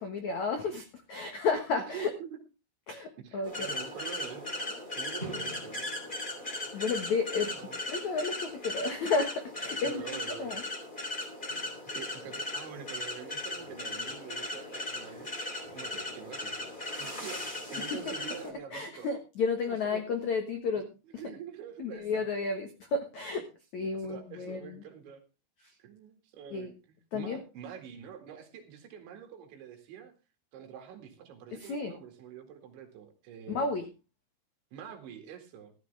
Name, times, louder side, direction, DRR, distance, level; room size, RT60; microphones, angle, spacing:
voice 1, 0.0-2.1 2.9-3.8 6.7-10.6 11.1-11.2 18.4-20.9 21.8-23.5 23.7-24.8 25.6-25.7 26.5-26.7 27.1-27.4 31.5-31.9 33.5-33.9, left 4 dB, 70° left, 6 dB, 1.7 m, -32 dB
voice 2, 1.9-2.4 3.2-4.5 5.0-5.8 7.6-7.8 9.8-10.5 11.9-15.3 15.7-17.4 17.7-19.1 19.6-20.0 21.1-22.3 24.0-25.2 25.8-30.1 30.5-33.7 34.7-35.7, right 9 dB, 70° right, 5 dB, 4.4 m, -45 dB
sound 1, 3.4-18.5, left 2 dB, 10° left, 2.7 m, -38 dB
14.0 x 13.5 x 3.4 m, 0.29 s
omnidirectional pair, 5.6 m